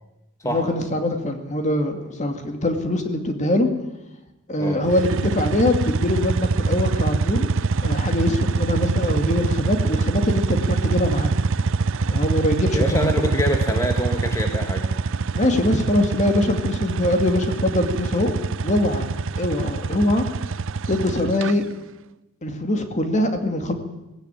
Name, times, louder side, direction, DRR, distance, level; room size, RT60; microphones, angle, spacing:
voice 1, 0.4-3.7 4.5-7.5 7.8-11.4 12.1-13.3 15.3-18.3 18.6-20.2 20.9-21.7 22.4-23.7, left 1 dB, 35° left, 6 dB, 2.4 m, -23 dB
sound 1, 4.8-21.5, right 4 dB, 65° right, 0.7 m, -24 dB
voice 2, 12.7-14.9, equal, 15° left, 3 dB, 1.8 m, -25 dB
18.5 x 17.0 x 9.3 m, 0.98 s
head